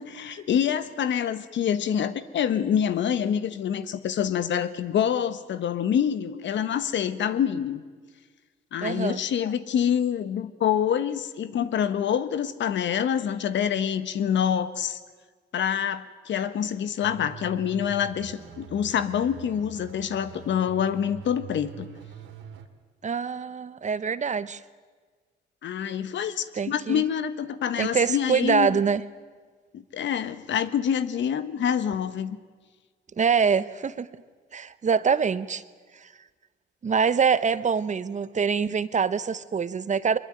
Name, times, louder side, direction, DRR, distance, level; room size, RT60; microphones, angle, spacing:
voice 1, 0.0-7.8 8.7-15.0 15.5-21.9 25.6-28.8 29.7-32.4, left 8 dB, 70° left, 13 dB, 1.5 m, -26 dB
voice 2, 8.8-9.2 23.0-24.6 26.5-27.0 27.8-29.0 33.2-34.1 34.5-35.6 36.8-40.2, right 6 dB, 40° right, 15 dB, 1.1 m, -24 dB
sound 1, 17.0-22.7, right 8 dB, 90° right, 2.4 m, -44 dB
23.0 x 22.0 x 9.2 m, 1.5 s
cardioid pair, 90°, 20 cm